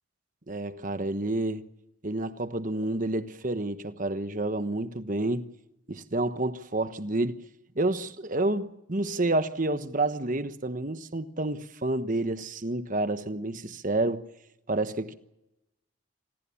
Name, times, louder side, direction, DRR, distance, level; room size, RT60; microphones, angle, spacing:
voice 1, 0.5-1.6 2.0-5.4 5.9-7.4 7.7-14.3 14.7-15.1, right 2 dB, 40° right, 1.2 m, -29 dB
27.0 x 20.0 x 7.2 m
head